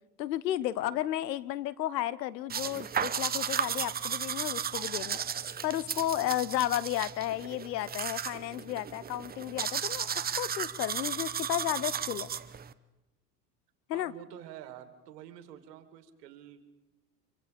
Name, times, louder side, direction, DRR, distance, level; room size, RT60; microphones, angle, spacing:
voice 1, 0.2-5.2 5.6-12.3 13.9-14.1, left 13 dB, 80° left, 18 dB, 0.9 m, -33 dB
sound 1, 2.5-12.7, right 8 dB, 20° right, 0.7 m, -34 dB
voice 2, 13.9-16.6, right 11 dB, 70° right, 9 dB, 2.4 m, -48 dB
25.0 x 25.0 x 5.2 m, 0.98 s
hypercardioid pair, 85°, 49 cm